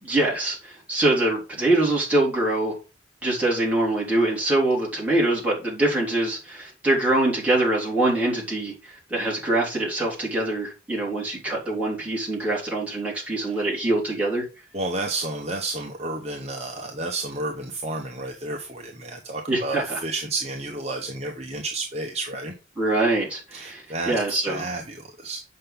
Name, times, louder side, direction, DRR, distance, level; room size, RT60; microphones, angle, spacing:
voice 1, 0.0-2.8 3.2-14.5 19.5-20.0 22.8-24.7, right 2 dB, 5° right, -5 dB, 3.7 m, -24 dB
voice 2, 14.7-22.5 23.5-24.1 24.5-25.4, right 2 dB, 35° right, 2 dB, 1.0 m, -31 dB
7.6 x 5.7 x 5.1 m, 0.31 s
head